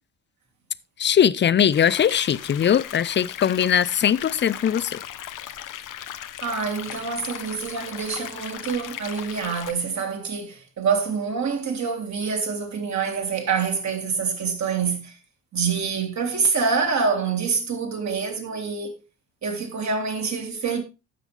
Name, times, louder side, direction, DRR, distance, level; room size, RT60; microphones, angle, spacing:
voice 1, 1.0-5.0, left 9 dB, 30° left, 0.6 m, -20 dB
sound 1, 1.7-9.7, left 11 dB, 50° left, 1.0 m, -37 dB
voice 2, 6.4-15.2 15.5-19.0 19.4-20.8, right 5 dB, 45° right, 3.0 m, -26 dB
15.0 x 6.1 x 3.4 m
hypercardioid pair, 50°, 40 cm